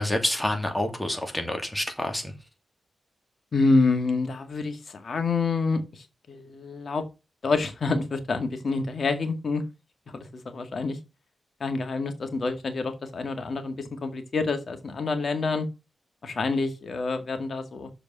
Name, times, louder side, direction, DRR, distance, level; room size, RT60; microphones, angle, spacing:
voice 1, 0.0-2.3, left 1 dB, 10° left, 2.4 m, -28 dB
voice 2, 3.5-7.0 7.4-9.6 10.1-11.0 11.6-15.7 16.2-17.9, left 3 dB, 60° left, 2.0 m, -27 dB
6.9 x 5.0 x 6.2 m
cardioid pair, 45°, 0 cm